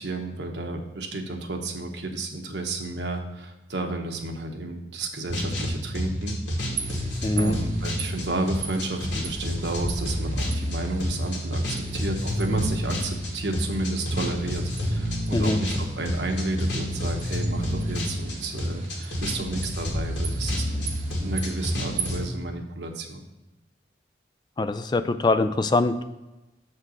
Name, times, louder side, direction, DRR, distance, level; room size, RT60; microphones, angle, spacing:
voice 1, 0.0-6.4 7.4-23.2, right 2 dB, 75° right, 3 dB, 1.1 m, -32 dB
sound 1, 5.3-22.2, equal, 85° left, 2.0 m, -29 dB
sound 2, 6.8-22.1, right 3 dB, 45° right, 0.9 m, -38 dB
voice 2, 7.2-7.5 15.3-15.6 24.6-26.0, left 2 dB, 25° left, 10 dB, 0.3 m, -23 dB
7.2 x 4.4 x 6.3 m, 1.0 s
head